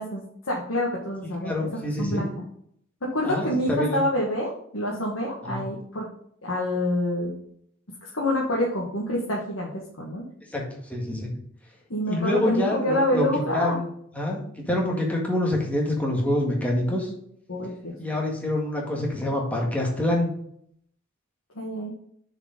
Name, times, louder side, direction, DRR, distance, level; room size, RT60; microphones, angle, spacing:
voice 1, 0.0-1.7 2.0-2.3 3.0-6.1 6.4-7.3 8.0-10.2 11.9-13.8 17.5-17.9 21.5-21.9, left 1 dB, 80° left, -3 dB, 1.6 m, -27 dB
voice 2, 1.2-2.2 3.2-4.0 5.4-5.6 10.5-10.6 10.9-11.3 12.1-13.3 13.5-13.9 14.1-17.1 18.0-20.3, left 1 dB, 5° left, -2 dB, 1.9 m, -26 dB
6.6 x 5.0 x 5.2 m, 0.68 s
head